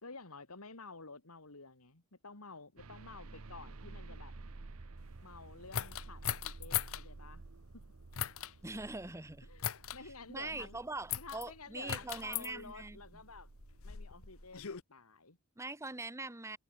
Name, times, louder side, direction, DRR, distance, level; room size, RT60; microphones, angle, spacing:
voice 1, 0.0-4.4 5.2-7.4 7.7-7.9 9.5-10.8 11.1-13.5 13.8-15.4, left 4 dB, 85° left, 3.0 m, -51 dB
sound 1, 2.8-14.5, right 3 dB, 75° right, 1.0 m, -52 dB
sound 2, 5.7-7.0 8.1-8.5 9.6-10.0 11.1-11.4 11.9-12.5 13.4-14.8, left 10 dB, 70° left, 0.9 m, -38 dB
voice 2, 8.6-9.5 10.0-13.0 15.6-16.6, right 2 dB, 15° right, 1.3 m, -42 dB
head